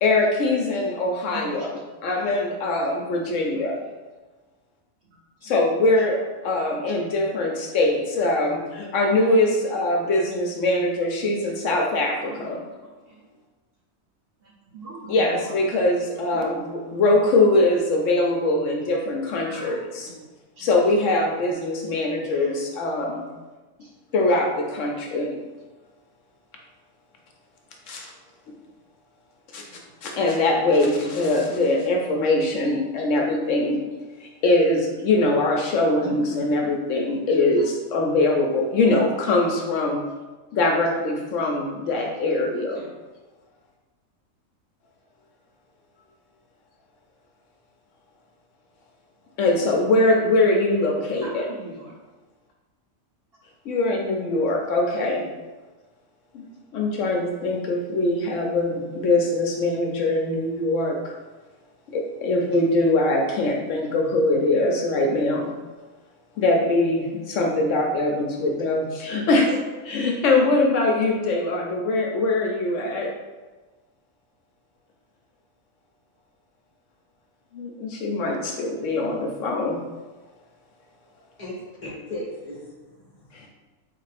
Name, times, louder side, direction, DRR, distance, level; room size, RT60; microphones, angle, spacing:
voice 1, 0.0-3.8 5.4-12.6 15.1-20.1 20.6-23.2 24.1-25.4 27.9-28.1 28.5-28.6 29.5-29.6 30.0-33.8 34.2-40.0 40.5-42.8 49.4-51.5 53.7-55.2 56.3-56.4 56.7-61.1 61.9-65.5 66.4-73.1 77.5-79.8 83.3-83.5, left 2 dB, 70° left, 1 dB, 0.9 m, -22 dB
voice 2, 1.3-1.7 3.5-3.9 5.4-5.5 6.9-7.0 12.3-13.2 14.4-15.6 16.3-16.4 19.5-20.1 20.6-20.7 22.3-22.5 23.8-23.9 29.7-29.8 36.0-36.5 38.8-39.1 42.7-42.9 51.2-51.9, right 4 dB, 50° right, -5 dB, 0.9 m, -41 dB
voice 3, 81.4-83.5, left 1 dB, 40° left, -5 dB, 0.9 m, -37 dB
3.8 x 3.3 x 3.3 m, 1.2 s
omnidirectional pair, 1.4 m